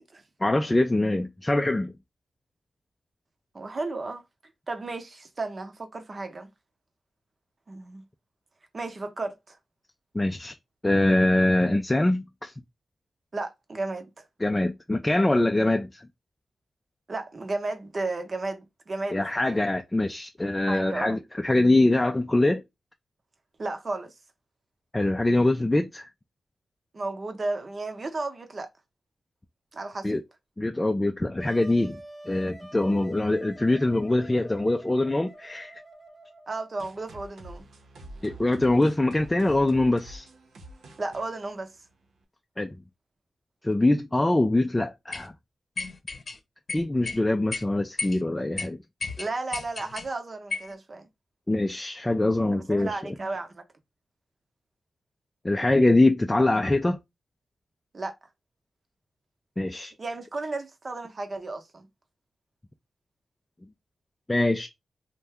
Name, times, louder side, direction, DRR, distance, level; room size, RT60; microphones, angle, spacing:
voice 1, 0.4-1.9 10.1-10.6 10.8-12.5 14.4-16.0 19.1-22.6 24.9-26.1 30.0-30.2 30.6-35.8 38.2-40.3 42.6-42.7 43.6-45.3 46.7-48.8 51.5-53.0 55.4-57.0 59.6-59.9 64.3-64.7, left 2 dB, 20° left, 0.4 m, -23 dB
voice 2, 3.5-4.2 4.7-6.5 7.7-8.0 8.7-9.6 13.3-14.2 17.1-19.7 20.7-21.2 23.6-24.1 26.9-28.7 29.7-30.1 36.5-37.6 41.0-41.7 49.2-51.1 52.5-53.6 57.9-58.1 60.0-61.9, right 3 dB, 45° right, 0.8 m, -33 dB
Wind instrument woodwind instrument, 31.4-36.9, right 1 dB, 20° right, 0.9 m, -47 dB
sound 1, 36.8-42.2, right 1 dB, 85° right, 0.8 m, -47 dB
sound 2, 45.1-45.3 45.8-46.4 46.7-47.2 47.5-47.6 48.0-48.2 48.6-48.7 49.0-50.1 50.5-50.7, left 3 dB, 55° left, 0.7 m, -33 dB
2.7 x 2.1 x 3.4 m
cardioid pair, 55°, 0 cm